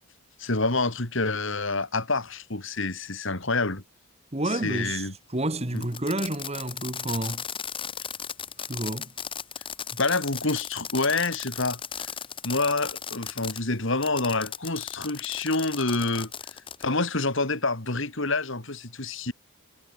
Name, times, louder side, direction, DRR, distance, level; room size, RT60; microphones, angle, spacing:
voice 1, 0.4-3.8 4.6-5.1 5.7-5.8 10.0-12.1 12.4-16.3 16.8-19.3, left 3 dB, 60° left, 3.0 m, -27 dB
voice 2, 4.3-7.5 8.6-9.1, right 1 dB, 30° right, 2.0 m, -30 dB
Fireworks, 5.8-13.6 14.0-16.9, left 8 dB, 25° left, 1.3 m, -36 dB
head